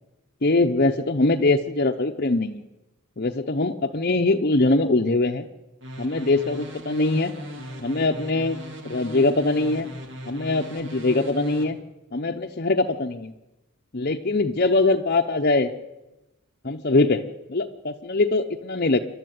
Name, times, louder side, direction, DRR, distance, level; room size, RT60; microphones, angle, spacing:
voice 1, 0.4-2.6 3.2-5.5 6.0-7.3 7.8-8.6 8.8-9.9 10.3-11.8 12.1-13.3 13.9-15.7 16.6-17.2 17.5-19.0, left 2 dB, 45° left, 2 dB, 0.9 m, -22 dB
sound 1, 5.8-11.6, equal, 55° right, 3.1 m, -38 dB
29.0 x 12.5 x 9.4 m, 1.0 s
head